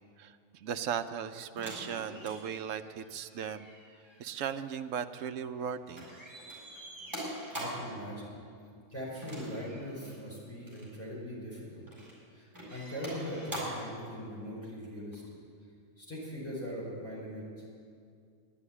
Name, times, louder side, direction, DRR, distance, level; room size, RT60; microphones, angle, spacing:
voice 1, 0.0-3.7 4.2-6.1, right 8 dB, 75° right, 9 dB, 1.0 m, -37 dB
sound 1, 1.6-5.7 5.9-8.0 9.2-10.2 10.6-10.9 11.6-12.2 12.5-13.9 15.1-15.2, equal, 15° right, 4.4 m, -44 dB
voice 2, 7.5-8.3 8.9-11.9 12.3-15.2 16.0-17.7, equal, 10° left, -6 dB, 4.7 m, -41 dB
11.0 x 10.5 x 9.8 m, 2.3 s
omnidirectional pair, 1.4 m